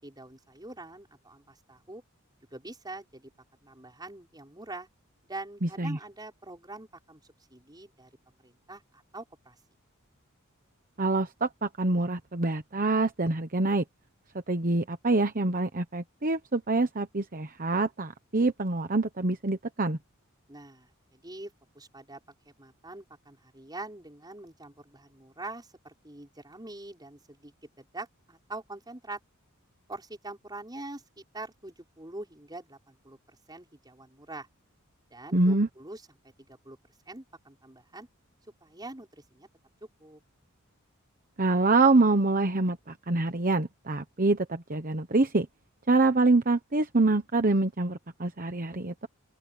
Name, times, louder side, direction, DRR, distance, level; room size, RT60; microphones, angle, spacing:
voice 1, 0.0-2.0 2.5-3.3 3.6-4.9 5.3-7.2 7.5-8.1 8.4-9.6 20.5-22.2 22.6-27.5 27.8-29.2 29.9-34.5 35.1-36.0 36.5-36.8 37.1-38.1 38.6-39.5 40.0-40.2, right 2 dB, 20° right, 5.9 m, -44 dB
voice 2, 5.6-6.0 11.0-13.8 14.5-20.0 35.3-35.7 41.4-45.5 45.9-49.1, right 2 dB, 40° right, 1.1 m, -25 dB
open air
head